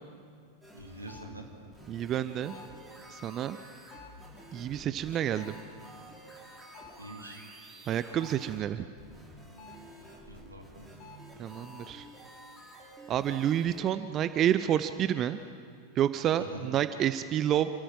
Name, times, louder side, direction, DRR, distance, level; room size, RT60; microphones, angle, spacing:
sound 1, 0.6-13.8, right 1 dB, 5° right, 4.5 m, -51 dB
voice 1, 0.7-1.5 7.0-7.4 10.3-10.9 16.4-16.7, right 1 dB, 80° right, 3 dB, 2.3 m, -45 dB
sound 2, 1.1-1.4 2.5-2.9 3.9-4.3 5.3-5.7 6.7-7.1 8.2-8.6 9.6-10.0 11.0-11.4, left 7 dB, 40° left, 2.0 m, -52 dB
voice 2, 1.9-2.6 3.1-3.6 4.5-5.6 7.9-8.9 11.4-12.1 13.1-15.4 16.0-17.7, right 10 dB, 30° right, 12 dB, 0.5 m, -29 dB
27.5 x 13.5 x 7.4 m, 2.3 s
figure-of-eight pair, 90°, 0 cm